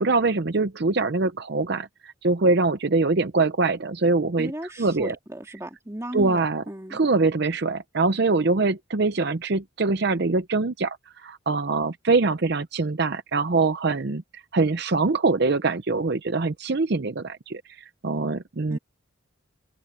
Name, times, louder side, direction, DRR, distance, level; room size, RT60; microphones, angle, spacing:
voice 1, 0.0-4.5 4.8-5.1 6.1-6.6 6.9-18.8, right 3 dB, 55° right, 0.7 m, -23 dB
voice 2, 4.4-6.4 6.7-7.0 18.7-18.8, right 1 dB, 15° right, 2.1 m, -35 dB
open air
head